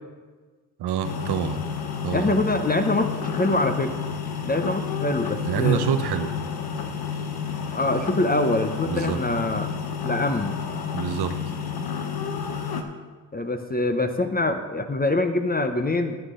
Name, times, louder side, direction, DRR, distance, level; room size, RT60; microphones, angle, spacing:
voice 1, 0.8-1.6 2.0-2.3 5.4-6.3 8.8-9.2 10.9-11.3, right 8 dB, 75° right, 8 dB, 0.9 m, -26 dB
sound 1, 1.0-12.8, left 6 dB, 65° left, 1.1 m, -30 dB
voice 2, 2.1-4.0 4.5-5.8 7.7-9.7 10.0-10.5 13.3-16.2, left 2 dB, 25° left, 7 dB, 0.8 m, -24 dB
10.5 x 9.2 x 3.8 m, 1.4 s
supercardioid pair, 55°, 39 cm